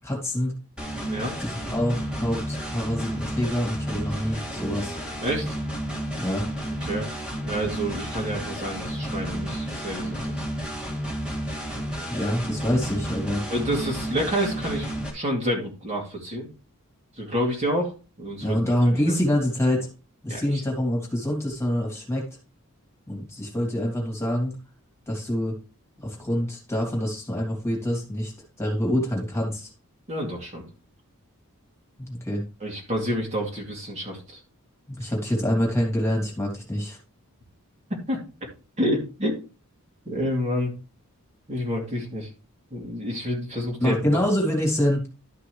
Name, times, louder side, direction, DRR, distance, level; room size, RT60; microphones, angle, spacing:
voice 1, 0.0-0.5 1.4-4.9 6.2-6.5 12.1-13.4 18.4-19.9 20.2-22.3 23.1-24.6 25.1-25.6 26.0-28.3 28.6-29.7 32.0-32.4 34.9-37.0 43.8-45.1, equal, 10° left, -1 dB, 2.7 m, -26 dB
sound 1, 0.8-15.1, right 1 dB, 5° right, 2.5 m, -32 dB
voice 2, 7.4-10.2 13.5-16.5 17.2-17.9 18.2-18.6 20.3-20.6 30.1-30.6 32.6-34.4 37.9-38.2 38.8-39.4 40.1-40.7 41.5-42.3 42.7-44.0, equal, 30° right, -1 dB, 2.7 m, -28 dB
12.5 x 5.9 x 3.2 m, 0.32 s
head